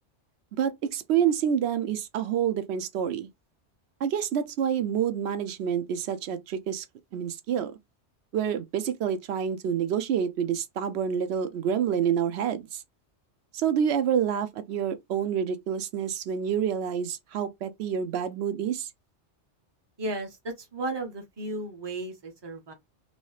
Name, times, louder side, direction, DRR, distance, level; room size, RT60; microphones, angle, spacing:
voice 1, 0.6-3.3 4.0-6.8 7.1-7.7 8.3-12.8 13.5-18.9, right 8 dB, 70° right, 0.8 m, -28 dB
voice 2, 20.0-22.7, right 2 dB, 25° right, 0.8 m, -34 dB
3.1 x 2.8 x 3.1 m
omnidirectional pair, 1.2 m